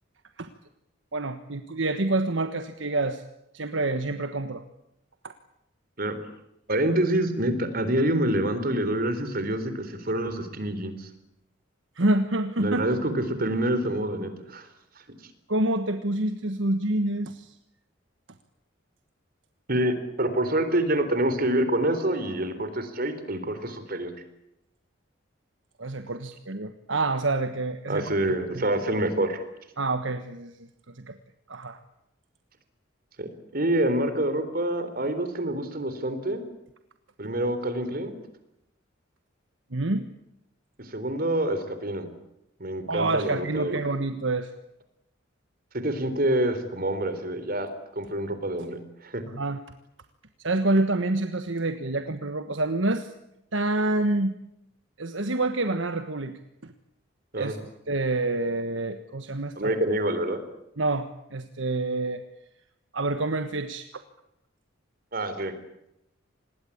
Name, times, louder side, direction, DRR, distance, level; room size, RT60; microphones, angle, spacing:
voice 1, 1.1-3.2 3.5-4.6 5.2-5.3 11.9-12.9 15.5-17.5 25.8-28.1 28.5-28.6 29.8-30.5 30.9-31.1 31.5-31.8 39.7-40.0 42.9-44.5 49.3-49.6 50.4-53.1 53.5-54.3 55.0-56.7 57.4-57.6 57.9-59.8 60.8-62.2 62.9-63.9, right 2 dB, 70° right, 9 dB, 1.4 m, -27 dB
voice 2, 6.7-11.1 12.6-14.7 19.7-24.1 27.9-29.4 33.2-33.3 33.5-36.4 37.2-38.1 40.8-42.1 42.6-43.8 45.7-47.7 48.0-49.2 57.3-57.6 59.6-60.4 65.1-65.5, right 1 dB, 45° right, 10 dB, 4.0 m, -27 dB
26.0 x 20.5 x 8.7 m, 0.83 s
head